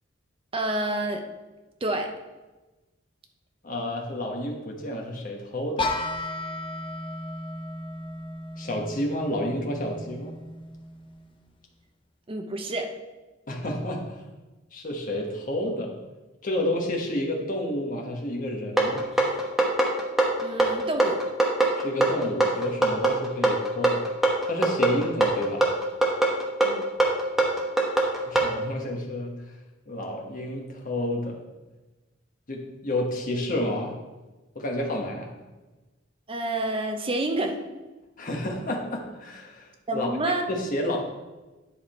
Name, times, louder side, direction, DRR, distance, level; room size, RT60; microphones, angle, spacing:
voice 1, 0.5-1.2 1.8-2.1 12.3-12.9 20.4-21.2 26.6-26.9 36.3-37.6 39.9-40.5, right 2 dB, 25° right, 5 dB, 0.7 m, -28 dB
voice 2, 3.6-5.9 8.6-10.3 13.5-14.1 14.7-15.9 16.4-19.1 21.8-24.0 24.5-25.7 28.3-29.4 29.9-31.4 32.5-34.0 34.5-35.3 38.2-41.0, left 1 dB, 45° left, 0 dB, 1.3 m, -30 dB
sound 1, 5.8-11.6, left 2 dB, 25° left, 0.6 m, -35 dB
sound 2, 18.8-28.5, right 2 dB, ahead, 1.1 m, -22 dB
10.0 x 4.9 x 4.3 m, 1.2 s
head